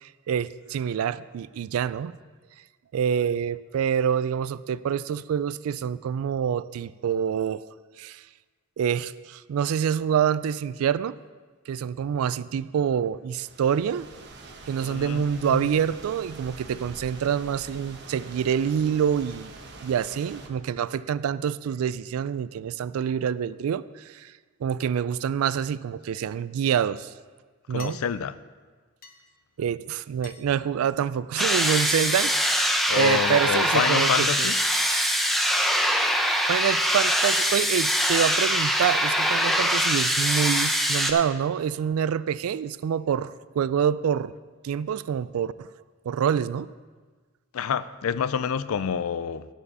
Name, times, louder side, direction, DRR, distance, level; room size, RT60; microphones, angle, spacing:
voice 1, 0.0-2.1 2.9-7.6 8.0-8.2 8.8-11.2 11.7-14.1 14.7-19.5 19.8-24.3 24.6-27.1 27.7-28.0 29.6-34.5 35.3-35.6 36.5-44.3 44.6-45.7 46.1-46.7, right 8 dB, 80° right, 17 dB, 0.3 m, -26 dB
sound 1, 13.3-20.5, right 2 dB, 55° right, 1.0 m, -45 dB
voice 2, 14.8-15.6 27.7-28.4 32.9-34.6 47.5-49.5, left 7 dB, 85° left, 15 dB, 0.4 m, -28 dB
sound 2, 26.6-26.7 27.8-28.0 29.0-29.2 30.2-30.4 31.4-31.6 32.6-32.8 33.7-33.9 34.7-34.9 35.7-35.8, left 4 dB, 45° left, 1.0 m, -44 dB
sound 3, 31.4-41.1, equal, ahead, 0.6 m, -23 dB
11.0 x 6.8 x 5.4 m, 1.4 s
head